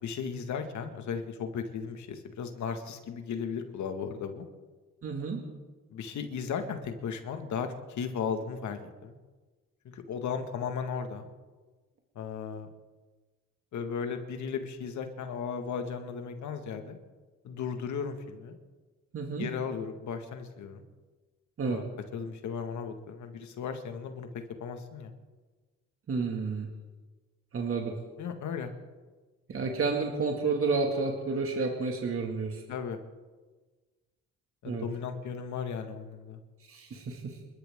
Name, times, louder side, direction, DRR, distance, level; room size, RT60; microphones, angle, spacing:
voice 1, 0.0-4.4 5.9-9.2 9.9-11.3 12.2-12.7 13.7-17.0 17.4-18.6 19.3-20.8 21.7-21.8 22.1-24.3 24.6-25.1 28.2-28.7 32.7-33.0 34.6-36.4, left 6 dB, 70° left, 6 dB, 1.9 m, -36 dB
voice 2, 5.0-5.4 19.1-19.5 21.6-21.8 26.1-26.7 27.5-28.0 29.5-32.6 34.6-34.9 36.7-37.4, right 4 dB, 45° right, 1 dB, 2.3 m, -30 dB
28.5 x 12.5 x 3.8 m, 1.3 s
cardioid pair, 90°, 30 cm